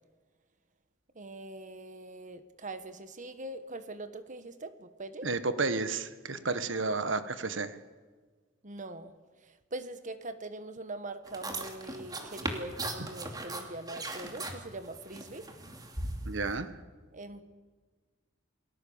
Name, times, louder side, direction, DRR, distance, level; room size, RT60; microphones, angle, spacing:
voice 1, 1.1-5.3 8.6-9.1 9.4-15.5 17.1-17.5, right 2 dB, 40° right, 10 dB, 1.4 m, -42 dB
voice 2, 5.2-7.7 13.0-13.1 16.2-16.7, right 3 dB, 75° right, 11 dB, 1.5 m, -32 dB
sound 1, 11.3-16.6, right 2 dB, 20° right, 2.7 m, -39 dB
28.5 x 20.0 x 7.2 m, 1.4 s
head